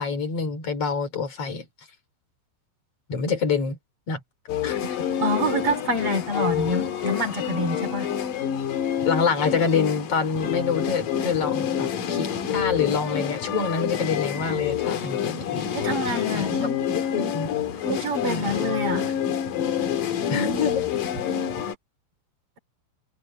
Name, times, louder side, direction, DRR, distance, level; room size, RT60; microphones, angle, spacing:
voice 1, 0.0-1.7 3.1-3.8 4.1-4.2 4.6-5.0 9.0-15.9 16.3-16.6 16.9-17.5 18.2-18.6 20.3-21.1, left 5 dB, 30° left, 4.6 m, -27 dB
sound 1, 4.5-21.7, left 9 dB, 55° left, 2.8 m, -27 dB
voice 2, 5.2-8.1 15.7-16.9 17.9-19.1, equal, 30° right, 3.5 m, -26 dB
omnidirectional pair, 5.6 m